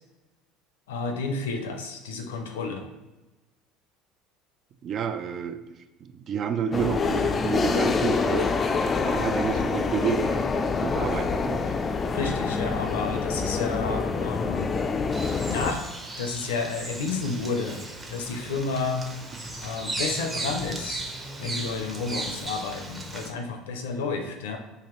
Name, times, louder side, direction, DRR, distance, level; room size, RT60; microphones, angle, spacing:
voice 1, 0.9-2.8 12.1-14.7 15.4-15.8 16.2-17.8 18.1-19.0 19.6-21.0 21.4-24.6, left 4 dB, 85° left, 4 dB, 0.6 m, -31 dB
voice 2, 4.8-8.5 9.0-10.5 10.8-11.7, right 7 dB, 50° right, 9 dB, 0.4 m, -30 dB
sound 1, 6.7-15.7, left 4 dB, 30° left, 0.3 m, -26 dB
Bird vocalization bird call bird song, 15.1-23.3, right 2 dB, 20° right, 0.8 m, -36 dB
4.0 x 2.7 x 3.0 m, 1.1 s
hypercardioid pair, 80°, 0 cm